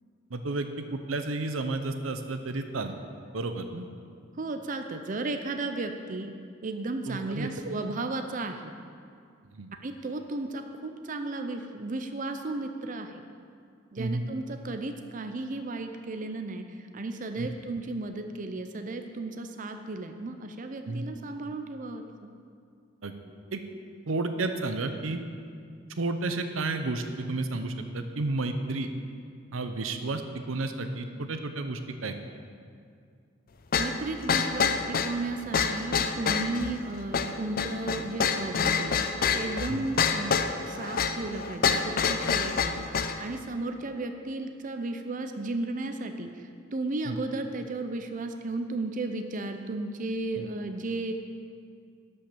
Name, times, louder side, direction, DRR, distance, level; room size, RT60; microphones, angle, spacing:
voice 1, 0.3-2.9 3.3-3.8 7.1-7.5 9.5-9.7 14.0-14.2 17.4-17.5 20.9-21.0 23.0-23.1 23.5-23.6 24.1-25.2 26.0-28.9 29.5-30.2 30.5-32.2 39.7-39.9 47.1-47.2 50.4-50.5, right 2 dB, 90° right, 7 dB, 0.8 m, -31 dB
voice 2, 4.4-6.3 6.6-8.7 9.8-13.2 13.9-22.3 33.7-40.3 40.6-51.1, right 2 dB, 40° right, 6 dB, 0.5 m, -34 dB
sound 1, 33.7-43.2, left 6 dB, 45° left, 0.5 m, -27 dB
11.5 x 5.6 x 6.8 m, 2.3 s
head